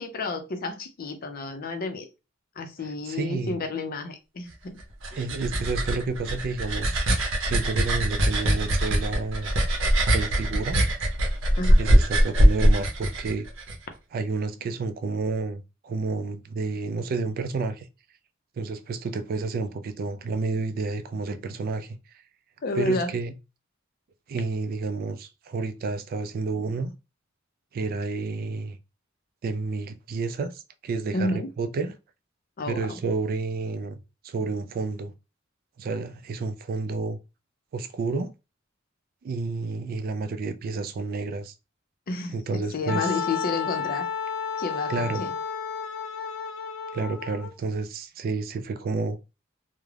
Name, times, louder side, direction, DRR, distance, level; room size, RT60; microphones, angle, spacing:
voice 1, 0.0-2.1 2.6-4.8 11.6-11.8 22.6-23.1 31.1-31.5 32.6-33.0 42.1-44.1 44.6-45.3, left 3 dB, 45° left, 0.5 m, -31 dB
voice 2, 3.1-3.6 5.2-7.0 7.4-9.5 10.1-10.8 11.8-13.5 14.1-17.9 18.6-22.0 22.8-23.3 24.3-26.9 27.7-28.8 29.4-31.9 32.7-33.9 34.2-35.1 35.8-37.2 37.7-38.3 39.2-41.5 42.3-43.1 44.9-45.2 46.9-49.2, right 3 dB, 50° right, 0.3 m, -30 dB
sound 1, 4.8-13.8, equal, 70° right, 0.7 m, -22 dB
Wind instrument woodwind instrument, 42.9-47.5, left 7 dB, 90° left, 0.6 m, -32 dB
2.4 x 2.0 x 3.1 m
head